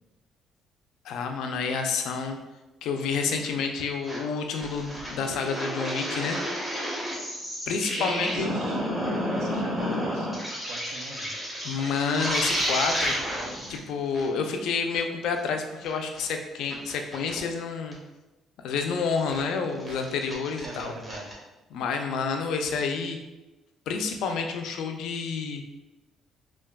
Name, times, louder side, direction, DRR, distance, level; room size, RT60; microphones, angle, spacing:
voice 1, 1.0-2.4 2.8-6.4 7.7-8.5 11.6-13.2 13.7-18.0 18.6-20.9 21.7-23.2 23.9-25.6, left 5 dB, 75° left, 4 dB, 0.3 m, -29 dB
sound 1, 4.0-4.2 4.6-13.8 14.1-14.2 14.5-14.6 14.9-15.0 15.4-15.5 15.8-16.3 16.7-17.4 17.9-18.0 18.8-18.9 19.1-19.4 19.8-21.3, equal, 10° right, 0.7 m, -31 dB
voice 2, 8.0-11.3 20.6-21.4, right 3 dB, 70° right, 2 dB, 0.5 m, -40 dB
3.4 x 2.2 x 2.2 m, 1.1 s
cardioid pair, 160°, 0 cm